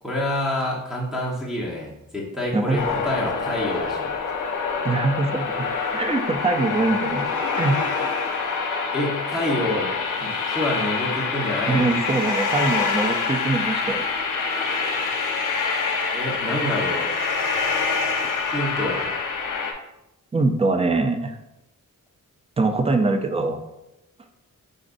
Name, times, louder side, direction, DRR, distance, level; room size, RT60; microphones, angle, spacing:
voice 1, 0.0-4.3 8.9-9.9 10.2-11.9 16.1-17.1 18.5-19.1, left 1 dB, ahead, -5 dB, 1.1 m, -27 dB
voice 2, 2.5-2.8 4.8-5.5 5.9-7.3 7.6-7.8 11.7-14.0 20.3-21.4 22.6-23.6, right 3 dB, 20° right, 6 dB, 0.5 m, -23 dB
sound 1, 2.8-19.7, left 5 dB, 65° left, 0.8 m, -26 dB
5.1 x 3.9 x 2.6 m, 0.88 s
wide cardioid pair, 100°, 34 cm